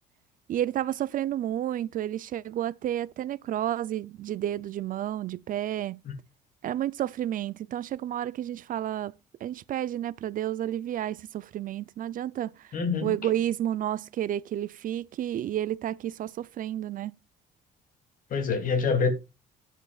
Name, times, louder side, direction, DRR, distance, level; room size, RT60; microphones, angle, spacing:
voice 1, 0.5-6.0 6.6-9.1 9.4-12.7 13.0-17.2, right 12 dB, 55° right, 0.5 m, -31 dB
voice 2, 12.7-13.1 18.3-19.1, left 5 dB, 55° left, 2.7 m, -25 dB
12.0 x 10.0 x 2.4 m
cardioid pair, 110°, 17 cm